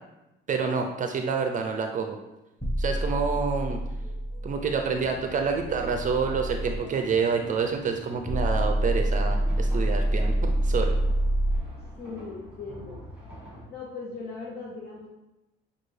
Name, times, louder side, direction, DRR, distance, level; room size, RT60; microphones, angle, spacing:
voice 1, 0.5-2.2 2.8-3.8 4.4-11.0, right 5 dB, 40° right, 4 dB, 0.4 m, -28 dB
sound 1, 2.6-6.8 8.3-11.6, right 1 dB, 10° left, 0.8 m, -27 dB
sound 2, 3.5-11.0, right 1 dB, 85° left, 1.1 m, -48 dB
sound 3, 4.9-13.6, equal, 5° right, 1.5 m, -47 dB
voice 2, 12.0-13.0 13.7-15.1, left 4 dB, 55° left, -3 dB, 0.7 m, -39 dB
6.4 x 2.4 x 3.2 m, 0.96 s
cardioid pair, 110°, 19 cm